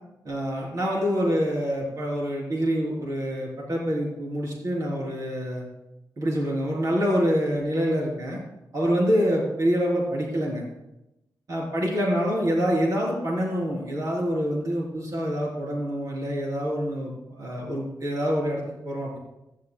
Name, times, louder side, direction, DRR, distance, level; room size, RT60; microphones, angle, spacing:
voice 1, 0.2-5.7 6.2-8.4 8.7-10.6 11.5-19.2, equal, 50° right, -3 dB, 3.8 m, -26 dB
16.0 x 12.0 x 2.3 m, 0.91 s
wide cardioid pair, 120°, 7 cm